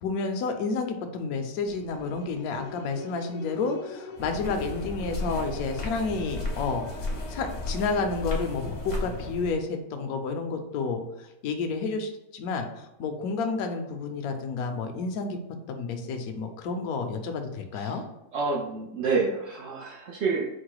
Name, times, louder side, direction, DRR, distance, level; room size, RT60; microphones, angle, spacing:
voice 1, 0.0-6.9 7.3-15.4 15.7-18.0, left 4 dB, 70° left, 5 dB, 1.0 m, -30 dB
sound 1, 1.7-9.3, left 4 dB, 85° left, 1.2 m, -44 dB
sound 2, 4.2-9.5, left 2 dB, 35° left, 0.7 m, -34 dB
voice 2, 18.3-20.5, right 4 dB, 85° right, -2 dB, 0.6 m, -28 dB
4.6 x 2.1 x 4.7 m, 0.91 s
omnidirectional pair, 1.8 m